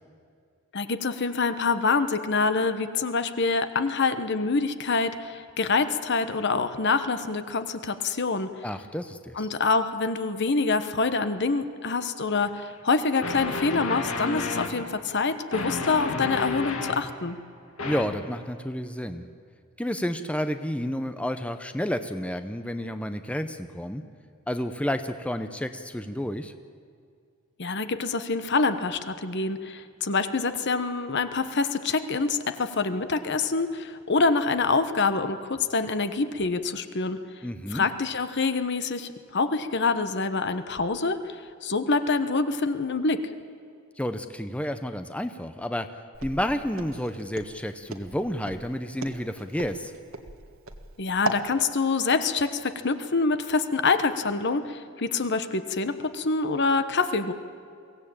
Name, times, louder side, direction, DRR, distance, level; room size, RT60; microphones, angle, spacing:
voice 1, 0.7-8.5 9.4-17.4 27.6-37.2 37.7-41.3 41.6-43.2 51.0-57.3, left 4 dB, 55° left, 10 dB, 1.1 m, -26 dB
voice 2, 8.6-9.5 17.8-19.3 19.8-24.0 24.5-26.5 37.4-37.9 44.0-45.9 46.2-49.9, equal, 5° left, 8 dB, 0.7 m, -30 dB
sound 1, 12.4-12.5 13.2-14.7 15.5-17.0 17.8-18.0, left 3 dB, 70° left, 2.3 m, -31 dB
Walk footsteps, 46.1-51.5, right 3 dB, 75° right, 1.6 m, -36 dB
23.0 x 16.5 x 8.8 m, 2.3 s
head